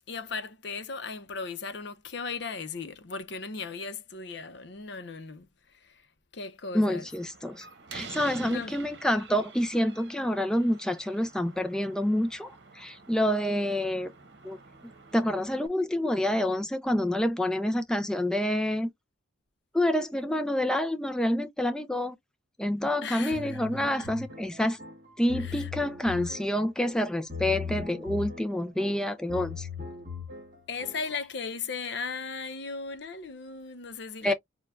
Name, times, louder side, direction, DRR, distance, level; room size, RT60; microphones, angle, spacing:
voice 1, 0.1-5.5 5.7-6.0 6.3-7.1 8.4-8.7 23.0-24.1 25.4-25.7 30.7-34.3, left 4 dB, 60° left, 0.6 m, -37 dB
voice 2, 6.7-7.7 7.9-14.1 14.4-14.6 15.1-18.9 19.7-22.2 22.6-24.8 25.2-29.7 34.2-34.3, left 1 dB, 5° left, 0.3 m, -28 dB
Slam, 7.1-15.7, right 4 dB, 55° right, 1.1 m, -48 dB
sound 1, 23.3-31.2, left 5 dB, 40° right, 1.8 m, -39 dB
6.6 x 2.2 x 2.4 m
head